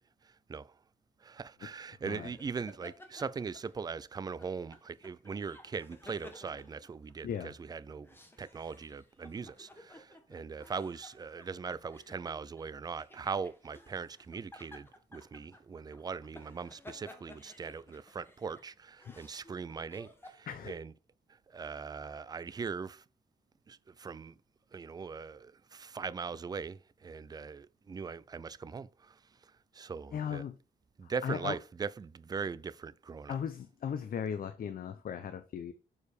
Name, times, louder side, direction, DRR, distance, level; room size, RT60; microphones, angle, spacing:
voice 1, 0.2-0.7 1.2-20.9 21.5-23.0 23.7-24.3 24.7-30.4 31.0-33.4, right 5 dB, 25° right, 0.3 m, -40 dB
sound 1, 2.1-4.0 4.4-7.4 7.9-20.5, left 1 dB, 10° left, 1.5 m, -55 dB
voice 2, 7.2-7.5 19.1-19.2 20.5-20.7 30.1-30.5 31.0-31.6 33.3-35.7, left 8 dB, 55° left, 0.7 m, -37 dB
6.7 x 4.7 x 4.8 m
cardioid pair, 110°, 17 cm